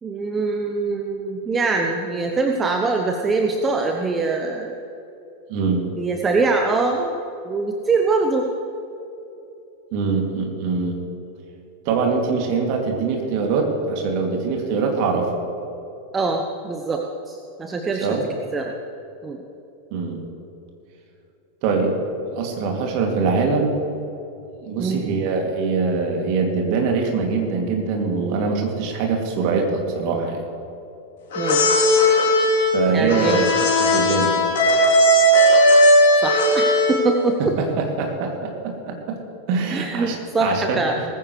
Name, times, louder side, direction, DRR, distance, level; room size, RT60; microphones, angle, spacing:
voice 1, 0.0-4.8 6.0-7.2 7.4-8.5 16.1-18.1 18.5-18.7 19.2-19.4 24.8-25.1 31.4-31.7 32.9-33.4 36.2-37.4 39.7-41.0, right 3 dB, 20° right, 3 dB, 1.0 m, -23 dB
voice 2, 5.5-5.9 9.9-11.0 11.8-15.3 18.0-18.2 19.9-20.2 21.6-21.9 22.3-23.8 24.6-30.4 32.7-33.5 33.8-34.3 37.6-39.2 39.5-41.1, right 4 dB, 45° right, 1 dB, 2.6 m, -23 dB
sound 1, 31.3-37.2, equal, 55° left, 3.4 m, -16 dB
19.0 x 15.0 x 3.3 m, 3.0 s
figure-of-eight pair, 90°, 0 cm